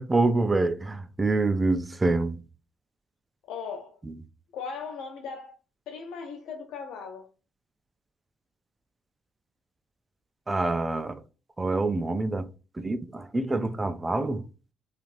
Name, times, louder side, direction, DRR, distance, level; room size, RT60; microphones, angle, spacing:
voice 1, 0.0-2.4 10.5-11.1 11.6-12.5 12.8-14.4, right 2 dB, 20° right, 0.3 m, -26 dB
voice 2, 3.5-4.0 4.5-5.6 5.9-7.3, left 5 dB, 85° left, 0.4 m, -38 dB
3.1 x 2.4 x 2.5 m
cardioid pair, 90°, 0 cm